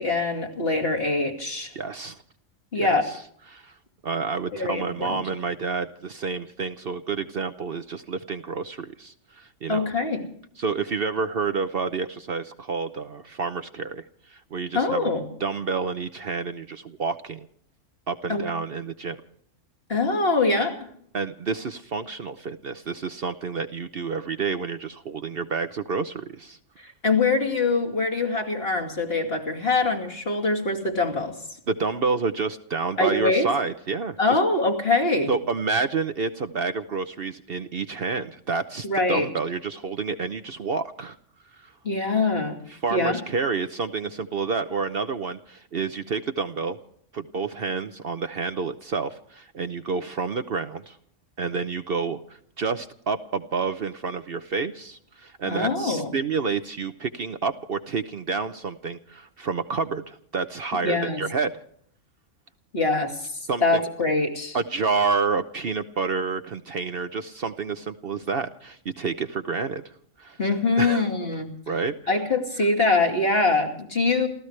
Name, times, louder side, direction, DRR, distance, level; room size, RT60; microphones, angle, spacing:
voice 1, 0.0-1.7 2.7-3.1 4.5-5.2 9.7-10.2 14.7-15.2 18.3-18.5 19.9-20.8 26.8-31.4 33.0-33.5 34.2-35.3 38.8-39.3 41.8-42.6 42.9-43.2 55.5-56.1 60.8-61.2 62.7-64.6 70.4-71.5 72.1-74.3, left 3 dB, 50° left, 2 dB, 2.8 m, -23 dB
voice 2, 1.8-2.2 2.7-3.2 3.5-3.7 4.0-9.9 10.6-15.1 15.4-17.5 18.1-19.2 21.1-26.6 31.7-34.4 35.3-41.2 41.6-41.7 42.7-46.8 47.1-51.0 51.4-61.6 63.5-63.8 64.5-69.9 70.2-70.4 70.8-71.0 71.7-71.9, right 4 dB, 50° right, 9 dB, 0.9 m, -29 dB
29.0 x 15.5 x 3.3 m, 0.64 s
omnidirectional pair, 1.3 m